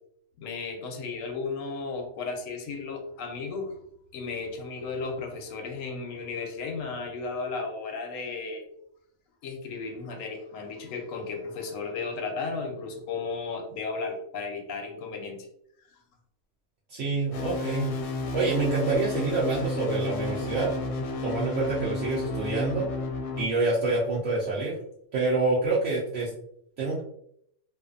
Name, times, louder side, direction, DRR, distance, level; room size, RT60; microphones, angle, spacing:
voice 1, 0.4-3.8 4.1-8.6 9.4-15.5, left 4 dB, 90° left, 3 dB, 1.0 m, -34 dB
voice 2, 16.9-17.9 18.3-20.7 21.2-22.9 23.4-24.8 25.1-26.3 26.8-27.0, right 3 dB, 70° right, -6 dB, 1.0 m, -27 dB
sound 1, 17.3-23.5, left 3 dB, 65° left, 0.8 m, -32 dB
2.6 x 2.4 x 2.4 m, 0.69 s
omnidirectional pair, 1.3 m